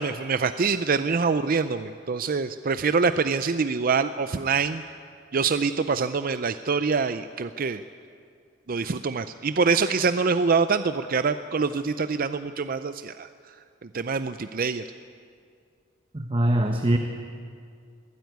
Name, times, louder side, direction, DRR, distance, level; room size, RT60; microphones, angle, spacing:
voice 1, 0.0-4.8 5.3-7.8 8.7-13.6 13.9-14.8, right 5 dB, 45° right, 11 dB, 0.5 m, -25 dB
voice 2, 16.1-17.0, right 1 dB, 25° right, 4 dB, 1.0 m, -22 dB
22.0 x 15.0 x 9.3 m, 2.3 s
head